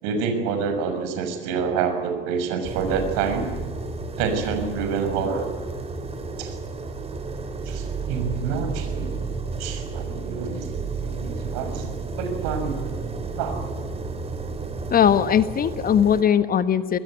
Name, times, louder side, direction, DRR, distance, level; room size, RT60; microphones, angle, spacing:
voice 1, 0.0-3.5 4.2-5.5 6.4-6.6 7.7-9.2 9.6-10.7 11.0-12.9 13.3-13.6, right 5 dB, 60° right, 6 dB, 6.4 m, -27 dB
sound 1, 2.6-16.2, right 4 dB, 20° right, 3.9 m, -32 dB
voice 2, 14.9-17.0, left 8 dB, 30° left, 12 dB, 1.3 m, -19 dB
24.0 x 20.5 x 9.6 m, 1.4 s
hypercardioid pair, 80°, 29 cm